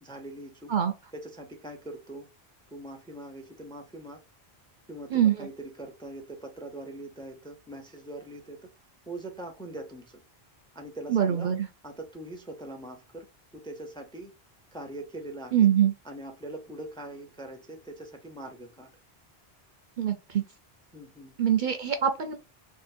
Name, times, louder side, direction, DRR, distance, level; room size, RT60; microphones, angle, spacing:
voice 1, 0.0-0.7 1.1-2.3 2.7-4.2 4.9-8.7 9.1-10.2 10.7-11.5 11.8-13.3 13.5-14.3 14.7-15.7 16.0-18.9 20.9-21.4, right 1 dB, 5° left, 0.6 m, -42 dB
voice 2, 5.1-5.5 11.1-11.7 15.5-15.9 20.0-20.4 21.4-22.4, right 9 dB, 55° right, 0.6 m, -24 dB
3.6 x 2.5 x 4.2 m
omnidirectional pair, 1.1 m